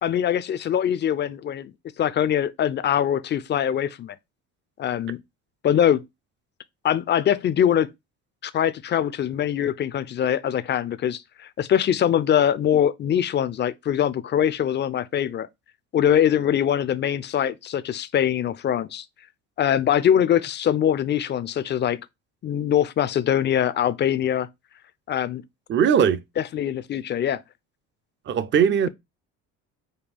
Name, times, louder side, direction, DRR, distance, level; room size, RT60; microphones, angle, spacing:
voice 1, 0.0-1.7 2.0-4.2 4.8-5.2 5.6-6.0 6.8-7.9 8.4-15.5 15.9-19.1 19.6-22.1 22.4-24.5 25.1-25.4 26.4-27.4, left 9 dB, 30° left, 0.4 m, -23 dB
voice 2, 25.7-26.2 28.3-28.9, right 8 dB, 35° right, 0.5 m, -19 dB
5.2 x 2.3 x 3.3 m
supercardioid pair, 85°, 35 cm